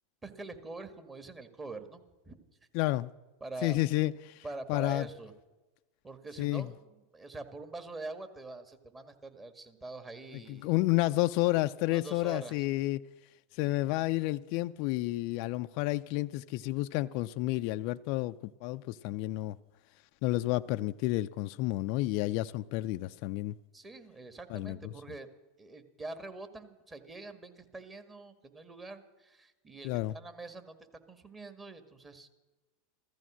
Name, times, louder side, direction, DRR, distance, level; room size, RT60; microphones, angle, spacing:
voice 1, 0.2-2.4 3.4-3.8 4.4-5.3 6.0-10.7 11.9-12.6 23.7-25.3 25.6-30.7 31.1-32.3, right 2 dB, 20° right, 2.0 m, -44 dB
voice 2, 2.7-3.1 3.6-5.1 6.4-6.7 10.3-13.0 13.5-18.3 18.6-19.6 20.2-23.5 24.5-24.8 29.8-30.1, left 18 dB, 55° left, 0.4 m, -30 dB
15.0 x 14.5 x 6.3 m
hypercardioid pair, 95°, 0 cm